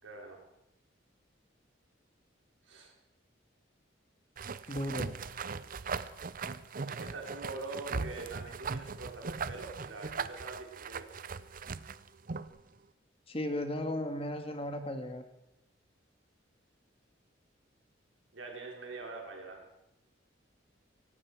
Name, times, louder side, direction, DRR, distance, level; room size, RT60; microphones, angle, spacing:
voice 1, 0.0-0.4 2.6-2.9 4.6-4.7 6.9-11.1 18.3-19.6, right 3 dB, 85° right, 1 dB, 4.3 m, -44 dB
sound 1, 4.4-12.6, right 5 dB, 45° right, 0.7 m, -39 dB
voice 2, 4.7-5.1 13.3-15.2, left 1 dB, 30° left, 7 dB, 1.8 m, -35 dB
18.0 x 17.0 x 4.8 m, 0.84 s
head